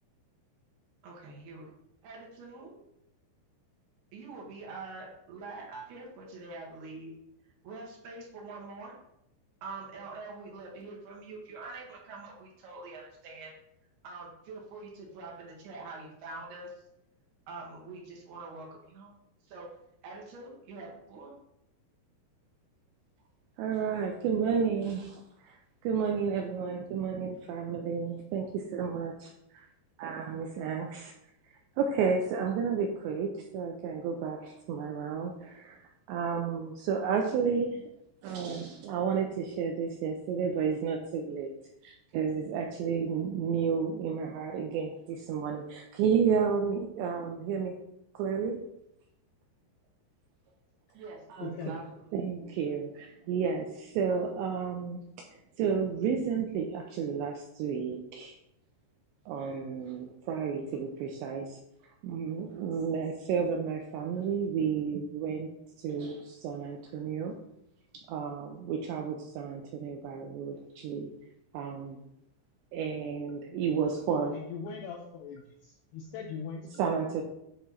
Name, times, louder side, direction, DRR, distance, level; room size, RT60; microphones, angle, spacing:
voice 1, 1.0-1.7 2.0-2.8 4.1-7.1 7.6-8.9 9.6-13.5 14.0-16.7 17.5-19.1 19.5-19.7 20.0-21.3 50.9-52.2, right 3 dB, 65° right, -2 dB, 3.6 m, -45 dB
voice 2, 23.6-29.7 30.0-31.1 31.8-35.8 36.1-37.9 38.2-41.5 41.8-47.7 48.1-48.6 51.3-51.8 52.1-55.0 55.3-58.4 59.3-61.6 62.0-65.5 65.8-67.3 67.9-71.1 71.5-72.0 72.7-74.4 76.8-77.2, right 6 dB, 80° right, 2 dB, 2.6 m, -32 dB
voice 3, 51.4-51.8 74.3-76.9, left 5 dB, 80° left, 1 dB, 2.4 m, -41 dB
10.5 x 3.6 x 5.5 m, 0.82 s
omnidirectional pair, 5.5 m